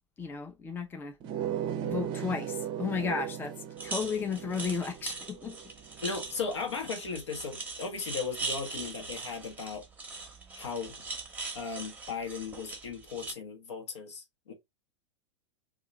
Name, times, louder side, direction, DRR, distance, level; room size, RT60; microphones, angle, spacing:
voice 1, 0.2-1.2 1.8-5.6, left 6 dB, 15° left, 0.5 m, -34 dB
sound 1, 1.2-6.5, right 10 dB, 35° right, 0.5 m, -37 dB
sound 2, 3.8-13.3, right 4 dB, 10° right, 0.9 m, -41 dB
voice 2, 6.0-9.8 10.5-11.0 11.5-14.5, left 5 dB, 75° left, 1.1 m, -36 dB
2.7 x 2.4 x 3.8 m
figure-of-eight pair, 95°, 15 cm